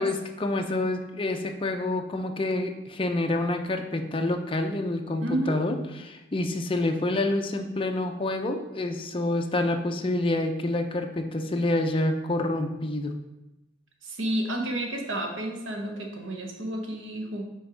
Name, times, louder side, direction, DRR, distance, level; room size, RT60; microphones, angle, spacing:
voice 1, 0.0-13.1, left 2 dB, 30° left, 5 dB, 0.6 m, -27 dB
voice 2, 5.2-5.6 14.0-17.4, right 1 dB, 80° right, 2 dB, 1.2 m, -31 dB
5.6 x 4.6 x 5.1 m, 0.99 s
head